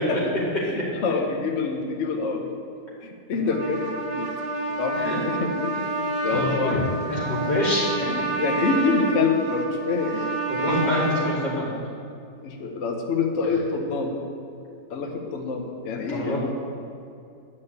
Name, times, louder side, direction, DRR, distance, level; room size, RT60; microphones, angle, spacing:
voice 1, 0.6-2.5 3.0-3.8 4.1-4.4 4.8-5.8 6.0-6.9 8.4-10.3 12.4-14.2 14.9-16.4, left 4 dB, 50° left, 2 dB, 1.1 m, -26 dB
Trumpet, 3.4-11.4, right 2 dB, 35° right, 1.4 m, -28 dB
voice 2, 6.3-6.8 7.1-8.3 10.5-11.8 16.1-16.4, left 1 dB, 85° left, -6 dB, 3.5 m, -26 dB
10.0 x 5.7 x 8.0 m, 2.5 s
omnidirectional pair, 1.8 m